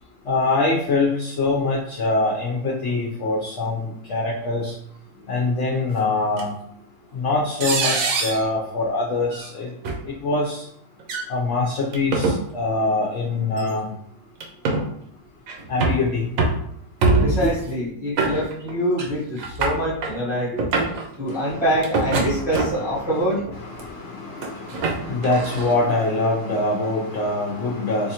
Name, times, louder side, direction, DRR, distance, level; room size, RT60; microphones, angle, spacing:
voice 1, 0.3-4.7 5.3-6.5 7.1-9.7 10.0-10.6 11.3-13.9 15.7-16.3 17.4-17.5 21.3-21.6 23.1-23.2 23.6-28.1, left 2 dB, 60° left, -3 dB, 0.9 m, -24 dB
sound 1, 6.4-6.5 7.6-8.4 9.3-9.5 9.8-10.0 11.0-11.3 11.9-12.4 13.6-13.7 14.4-14.9 15.5-16.0 16.4-16.6 17.0-17.5 18.2-18.7 19.0-19.1 19.4-20.1 20.5-21.0 21.8-22.9 23.5-23.8 24.4-25.7, right 3 dB, 70° right, 1.0 m, -23 dB
voice 2, 17.2-20.6 21.2-23.4, equal, ahead, -7 dB, 0.8 m, -24 dB
4.0 x 2.4 x 2.8 m, 0.68 s
omnidirectional pair, 1.6 m